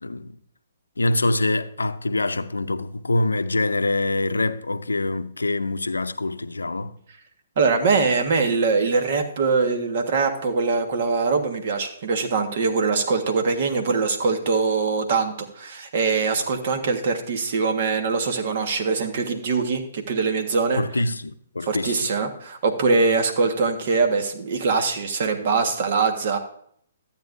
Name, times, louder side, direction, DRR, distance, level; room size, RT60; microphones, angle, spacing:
voice 1, 0.0-0.4 1.0-6.9 20.8-22.0, left 2 dB, 85° left, 0.5 m, -25 dB
voice 2, 7.6-20.8 21.6-26.4, right 4 dB, 50° right, 1.5 m, -23 dB
13.0 x 8.9 x 2.6 m
figure-of-eight pair, 130°, 0 cm